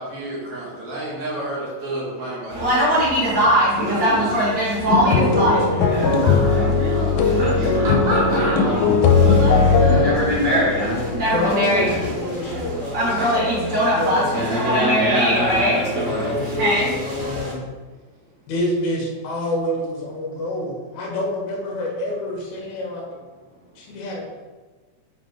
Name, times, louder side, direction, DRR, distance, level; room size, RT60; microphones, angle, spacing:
voice 1, 0.0-2.9 7.2-8.6 12.0-12.1, right 1 dB, 55° right, -5 dB, 2.9 m, -29 dB
Conversation, 2.5-17.5, equal, 35° right, 2.3 m, -22 dB
sound 1, 4.9-12.1, left 4 dB, 85° left, 2.4 m, -19 dB
voice 2, 5.0-6.4 6.7-7.9 9.2-11.1, right 1 dB, 75° right, -4 dB, 1.1 m, -30 dB
voice 3, 11.3-17.6 18.5-23.0 23.8-24.2, left 1 dB, 60° left, -2 dB, 2.5 m, -27 dB
7.6 x 4.0 x 4.7 m, 1.3 s
omnidirectional pair, 4.1 m